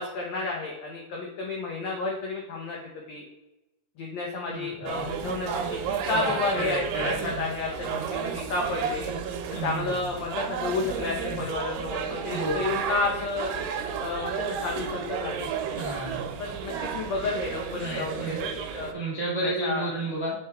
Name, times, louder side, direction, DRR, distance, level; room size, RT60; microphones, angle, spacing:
voice 1, 0.0-2.8 3.1-3.2 4.0-9.1 9.6-13.5 14.0-15.5 16.4-18.9 19.4-19.9, left 3 dB, 90° left, -1 dB, 1.5 m, -31 dB
voice 2, 4.5-4.9 6.1-7.1 9.5-10.0 12.3-12.6 15.7-16.2 17.7-18.4 18.9-20.3, right 2 dB, 45° right, -6 dB, 0.5 m, -32 dB
sound 1, 4.9-18.9, right 7 dB, 80° right, 2.3 m, -32 dB
6.8 x 4.5 x 3.4 m, 0.99 s
omnidirectional pair, 4.3 m